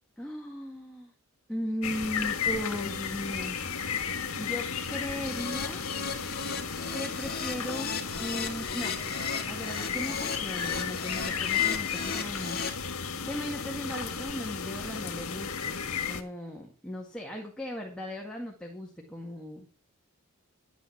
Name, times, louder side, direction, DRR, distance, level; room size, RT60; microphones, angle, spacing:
voice 1, 0.2-1.1 1.5-3.6 4.3-5.9 6.9-9.0 9.5-12.6 13.2-15.8 16.1-19.7, equal, 5° left, -1 dB, 2.0 m, -37 dB
sound 1, 1.8-16.2, left 6 dB, 75° left, 1.8 m, -33 dB
Keyboard (musical), 5.2-12.7, left 5 dB, 45° left, 2.3 m, -36 dB
11.5 x 9.3 x 6.0 m, 0.41 s
head